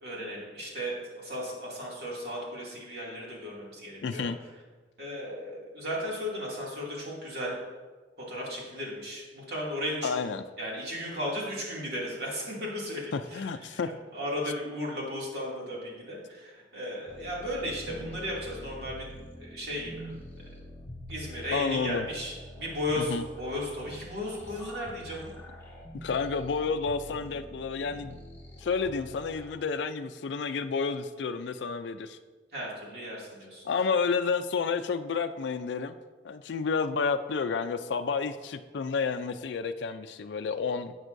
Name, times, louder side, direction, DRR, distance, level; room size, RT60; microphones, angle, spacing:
voice 1, 0.0-4.3 5.0-7.6 8.2-10.1 10.6-19.1 19.4-20.5 21.1-25.3 32.5-33.6, left 1 dB, 60° right, -4 dB, 2.4 m, -35 dB
voice 2, 4.0-4.4 10.0-10.4 13.1-13.9 21.5-22.1 23.0-23.2 26.0-28.2 28.6-32.2 33.6-36.0 36.2-40.9, left 5 dB, 70° left, 9 dB, 0.4 m, -30 dB
sound 1, 17.1-29.5, equal, 10° left, 1.3 m, -45 dB
11.0 x 8.1 x 2.6 m, 1.4 s
head